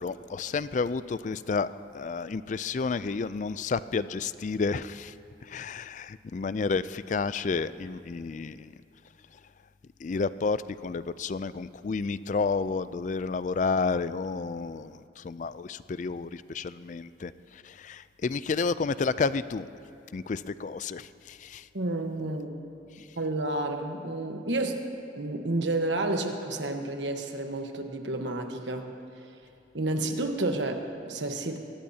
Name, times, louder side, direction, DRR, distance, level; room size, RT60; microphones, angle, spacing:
voice 1, 0.0-1.7 1.9-5.1 5.4-8.7 10.0-19.7 20.1-21.7, left 4 dB, 40° left, 15 dB, 0.3 m, -31 dB
voice 2, 21.7-22.6 23.2-24.9 25.2-28.9 29.7-31.6, right 2 dB, 75° right, 5 dB, 1.2 m, -30 dB
23.0 x 19.0 x 2.8 m, 2.6 s
head